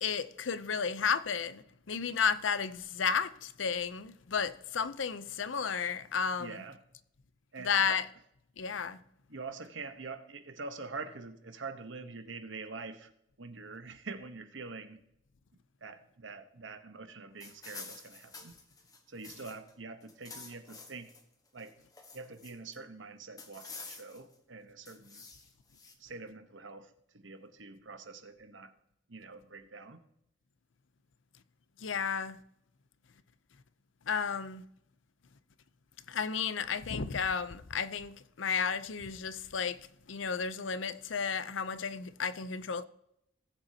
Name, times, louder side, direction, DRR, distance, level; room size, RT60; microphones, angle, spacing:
voice 1, 0.0-6.6 7.6-8.1 8.6-9.0 31.8-32.4 34.1-34.6 36.1-42.8, left 6 dB, 80° left, 0.6 m, -33 dB
voice 2, 6.4-6.8 7.5-8.0 9.3-13.1 13.4-15.0 15.8-18.5 19.1-21.1 21.5-21.8 22.1-25.3 26.0-28.7 29.1-30.0, right 4 dB, 75° right, 1.1 m, -45 dB
sound 1, 17.4-19.7 20.0-21.2 21.6-22.8 23.4-24.3 24.9-25.9, left 4 dB, 20° left, 1.3 m, -49 dB
18.0 x 7.9 x 2.8 m
head